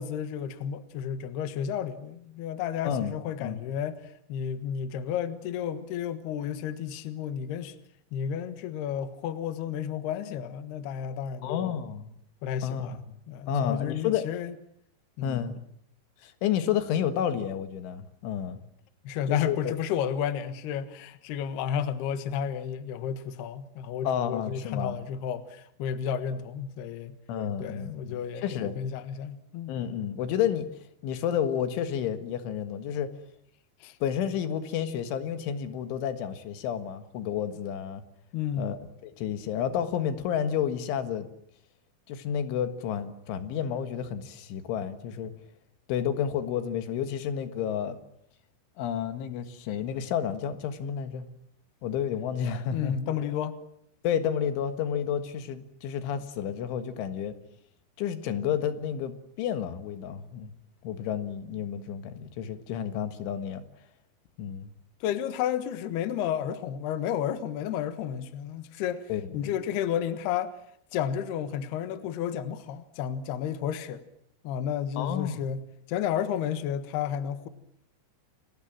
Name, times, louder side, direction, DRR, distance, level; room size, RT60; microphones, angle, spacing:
voice 1, 0.0-7.8 8.1-11.8 12.4-14.5 15.2-15.5 19.0-27.2 27.6-29.8 33.8-34.0 38.3-38.7 52.7-53.6 65.0-70.5 70.9-74.0 74.4-75.6 75.9-77.5, left 9 dB, 65° left, 3.2 m, -32 dB
voice 2, 2.8-3.1 3.4-3.6 11.4-12.1 12.6-13.0 13.5-14.3 15.2-15.6 16.2-18.6 19.3-19.7 24.1-25.0 27.3-28.8 29.7-30.7 31.0-33.1 34.0-38.0 38.6-41.3 42.1-45.3 45.9-48.0 48.8-51.3 51.8-53.0 54.0-57.4 58.0-60.5 60.8-63.6 64.4-64.7 69.1-69.6 75.0-75.4, left 8 dB, 85° left, 4.1 m, -30 dB
29.5 x 22.5 x 7.5 m
omnidirectional pair, 5.4 m